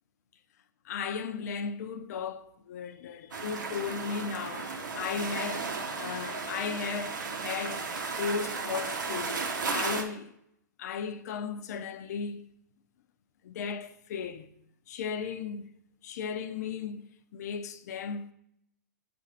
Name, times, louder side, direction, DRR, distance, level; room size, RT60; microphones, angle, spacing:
voice 1, 0.8-9.4 9.7-10.3 10.8-12.5 13.4-14.5 14.9-15.7 16.0-18.3, left 6 dB, 60° left, 0.5 m, -36 dB
sound 1, 3.3-10.0, right 4 dB, 85° right, 0.9 m, -34 dB
7.1 x 2.6 x 5.5 m
hypercardioid pair, 110°, 10 cm